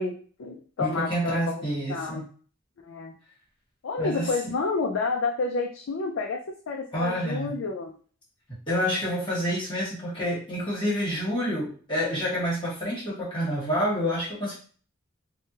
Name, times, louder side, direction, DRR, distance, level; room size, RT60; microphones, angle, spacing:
voice 1, 0.0-1.6 1.9-2.3 2.8-3.1 3.8-7.9, left 4 dB, 70° left, 1 dB, 0.4 m, -30 dB
voice 2, 0.8-2.2 4.0-4.3 6.9-7.5 8.7-14.5, equal, 25° left, -8 dB, 1.4 m, -28 dB
3.4 x 2.2 x 2.7 m, 0.42 s
head